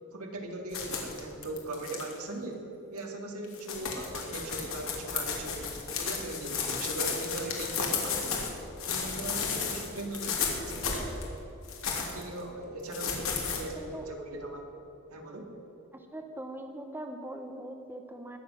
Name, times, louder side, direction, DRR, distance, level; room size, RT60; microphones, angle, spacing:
voice 1, 0.1-8.5 8.8-11.1 11.8-14.7 15.1-15.5, right 2 dB, 85° right, 1 dB, 2.2 m, -39 dB
sound 1, 0.7-2.1 3.0-3.1 3.4-8.5 8.8-11.2 11.6-12.2 12.9-13.6, left 5 dB, 65° left, 2.5 m, -33 dB
voice 2, 13.8-14.1 15.9-18.4, right 1 dB, 10° right, 4 dB, 0.9 m, -41 dB
20.0 x 7.8 x 6.3 m, 3.0 s
head